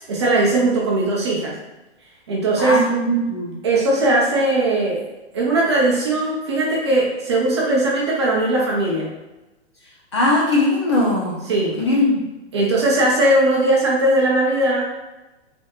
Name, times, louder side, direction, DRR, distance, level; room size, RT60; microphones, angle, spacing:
voice 1, 0.1-1.5 2.3-2.8 3.6-5.0 5.3-9.1 11.5-11.7 12.5-14.9, right 2 dB, 25° right, -4 dB, 0.6 m, -19 dB
voice 2, 2.6-3.6 10.1-11.4 11.8-12.2, left 1 dB, 25° left, -5 dB, 0.6 m, -19 dB
5.5 x 3.5 x 2.4 m, 1.1 s
hypercardioid pair, 180°, 34 cm